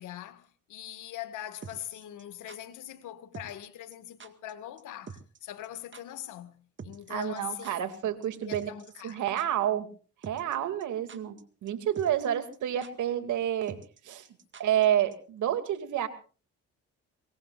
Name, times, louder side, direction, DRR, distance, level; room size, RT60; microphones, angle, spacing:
voice 1, 0.0-7.8 8.4-9.2, left 11 dB, 85° left, 2.0 m, -42 dB
sound 1, 1.6-2.6 3.3-3.7 3.9-4.0 4.2-4.5 4.8-4.9 5.1-5.4 5.6-5.7 5.9-6.0 6.8-8.0 8.2-8.3 8.5-9.1 9.4-9.5 10.2-10.6 10.8-11.4 11.7-11.8 12.0-12.3 12.5-12.6 12.8-12.9 13.7-14.9 15.1-15.2, right 5 dB, 40° right, 2.1 m, -45 dB
voice 2, 7.1-8.7 9.0-9.9 10.2-13.8 14.0-14.3 14.6-16.1, right 10 dB, 80° right, 2.7 m, -29 dB
25.0 x 22.0 x 2.6 m
cardioid pair, 90°, 30 cm